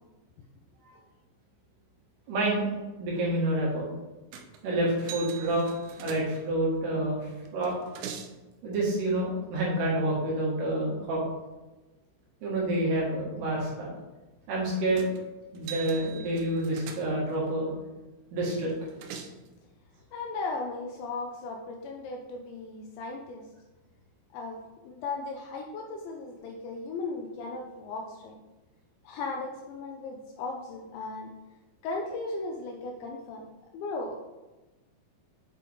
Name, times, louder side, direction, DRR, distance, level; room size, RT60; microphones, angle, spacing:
voice 1, 2.3-2.6 3.0-3.9 4.6-5.7 6.0-7.2 7.5-7.7 8.6-11.2 12.4-13.9 14.5-15.1 15.5-17.7 18.3-18.7, right 1 dB, 65° right, -4 dB, 3.5 m, -28 dB
sound 1, 4.3-4.7 5.1-6.7 7.5-8.4 15.0-15.2 15.6-17.4 18.7-19.5, right 7 dB, 85° right, 3.0 m, -43 dB
voice 2, 20.1-23.5 24.3-28.4 29.0-31.3 31.8-33.4 33.7-34.2, left 3 dB, 80° left, 1 dB, 2.7 m, -36 dB
8.4 x 6.0 x 3.5 m, 1.1 s
omnidirectional pair, 5.7 m